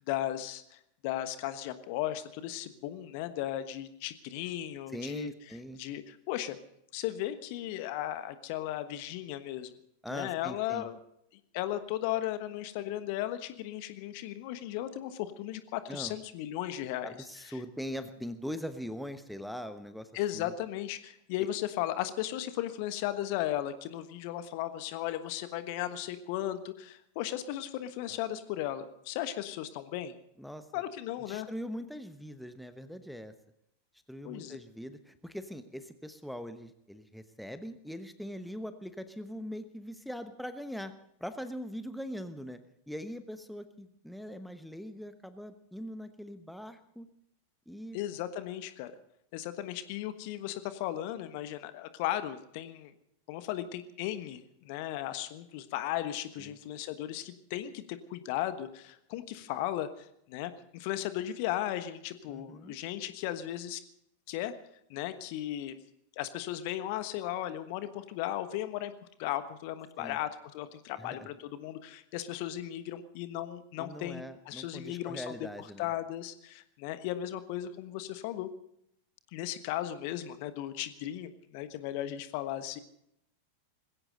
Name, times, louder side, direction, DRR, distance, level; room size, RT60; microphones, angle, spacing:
voice 1, 0.0-5.3 5.7-6.6 6.9-9.7 10.1-11.0 11.5-17.1 20.1-30.1 30.7-31.5 34.2-34.6 47.9-48.9 49.3-52.9 53.3-63.8 64.3-64.5 64.9-65.8 66.2-68.9 69.2-78.5 79.3-82.8, left 13 dB, 45° left, 11 dB, 1.3 m, -36 dB
voice 2, 4.9-5.9 10.0-10.9 15.9-16.1 17.0-20.5 21.4-21.5 28.1-28.2 30.4-30.8 31.3-33.3 34.1-40.9 41.2-42.6 42.9-47.1 47.7-48.0 56.4-56.5 62.3-62.7 70.0-70.2 71.0-71.3 73.8-75.9, equal, ahead, 10 dB, 1.0 m, -42 dB
20.5 x 16.5 x 4.0 m, 0.75 s
figure-of-eight pair, 90°, 0 cm